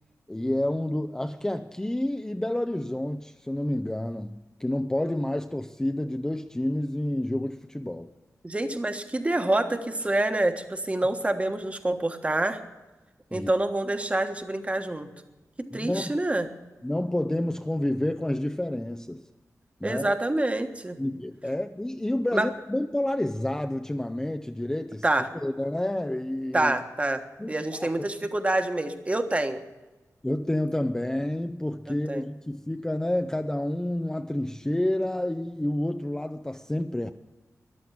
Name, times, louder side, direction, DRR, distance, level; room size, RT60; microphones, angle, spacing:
voice 1, 0.3-8.1 13.3-13.5 15.7-16.2 16.8-19.2 19.8-20.1 21.0-25.0 25.4-26.7 27.4-27.9 30.2-37.1, left 1 dB, 10° left, 7 dB, 0.6 m, -29 dB
voice 2, 8.4-12.6 13.3-15.1 15.6-16.5 19.8-21.0 22.3-22.5 25.0-25.3 26.5-27.2 27.5-29.6 32.1-32.2, right 1 dB, 20° right, 7 dB, 1.4 m, -27 dB
14.0 x 11.0 x 8.8 m, 1.1 s
wide cardioid pair, 115°, 6 cm